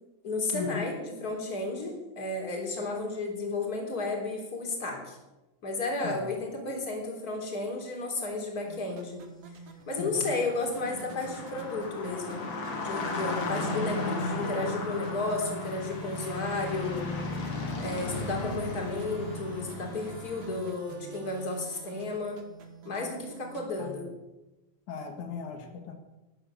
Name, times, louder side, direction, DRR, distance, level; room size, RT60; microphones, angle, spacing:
voice 1, 0.2-5.2 5.6-9.2 9.9-12.4 12.8-17.1 17.8-22.4 22.9-24.1, left 3 dB, 30° left, 1 dB, 3.6 m, -33 dB
sound 1, 8.7-23.7, right 4 dB, 60° right, 2.6 m, -48 dB
voice 2, 10.0-10.3 13.5-13.6 23.8-24.1 24.9-26.0, left 6 dB, 85° left, 4 dB, 3.1 m, -38 dB
sound 2, 10.2-20.6, left 2 dB, 70° left, 3.8 m, -35 dB
12.0 x 11.0 x 8.2 m, 1.0 s
omnidirectional pair, 3.3 m